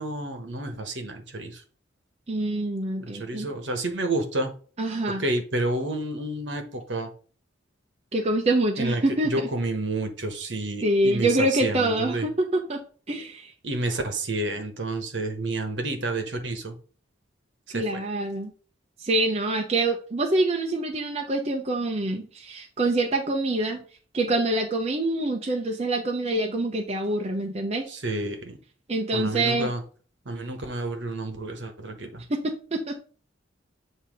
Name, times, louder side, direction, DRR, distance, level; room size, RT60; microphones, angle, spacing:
voice 1, 0.0-1.6 3.0-4.5 5.2-7.1 8.8-12.3 13.6-16.8 17.7-18.0 27.9-28.6 29.1-29.8 30.3-32.2, right 2 dB, 65° right, 6 dB, 1.2 m, -30 dB
voice 2, 2.3-3.5 4.8-5.2 8.1-9.5 10.8-12.8 13.1-13.5 17.7-18.5 19.0-23.8 24.1-27.8 28.9-29.7 32.3-32.9, right 2 dB, 35° right, 2 dB, 0.7 m, -25 dB
8.0 x 2.8 x 5.2 m, 0.40 s
head